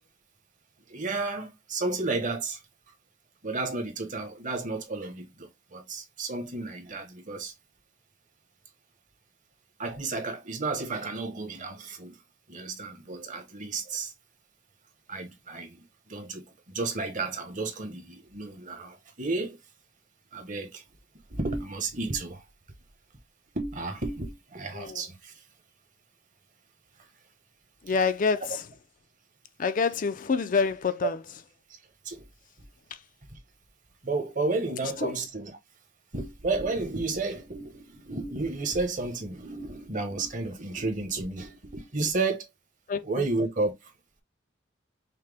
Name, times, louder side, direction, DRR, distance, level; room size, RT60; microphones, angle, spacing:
voice 1, 0.9-2.6 3.4-7.5 9.8-12.2 12.5-14.1 15.1-19.6 20.3-20.8 21.3-22.4 23.5-25.4 31.0-31.1 32.0-32.2 33.3-33.4 34.0-35.5 36.1-42.5 43.0-43.9, right 3 dB, 45° right, 1.1 m, -32 dB
voice 2, 27.8-28.6 29.6-31.2 35.0-35.2 42.9-43.3, left 5 dB, 45° left, 0.4 m, -27 dB
5.7 x 2.2 x 3.3 m
head